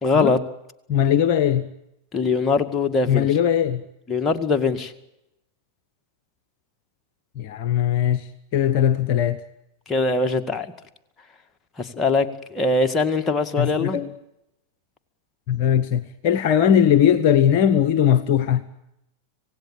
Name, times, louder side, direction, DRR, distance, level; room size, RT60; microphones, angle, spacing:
voice 1, 0.0-0.4 2.1-3.3 4.1-4.9 9.9-10.7 11.8-14.0, left 3 dB, 15° left, 2.0 m, -22 dB
voice 2, 0.9-1.7 3.1-3.8 7.4-9.4 13.6-14.1 15.5-18.7, left 9 dB, 45° left, 1.0 m, -19 dB
26.5 x 18.0 x 9.0 m
figure-of-eight pair, 90°, 0 cm